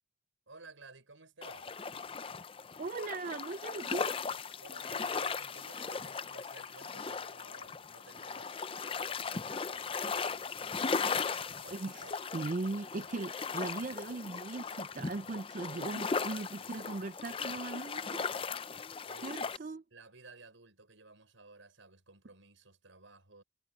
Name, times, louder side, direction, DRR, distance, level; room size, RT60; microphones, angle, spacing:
voice 1, 0.5-1.7 4.6-9.3 9.7-12.2 16.5-17.8 19.0-23.4, right 3 dB, 85° right, 5.6 m, -57 dB
sound 1, 1.4-19.6, left 5 dB, 30° left, 0.5 m, -38 dB
voice 2, 2.8-4.2 11.6-18.2 19.2-19.8, right 3 dB, 40° right, 0.5 m, -39 dB
sound 2, 13.5-14.8, right 3 dB, 15° right, 3.9 m, -61 dB
head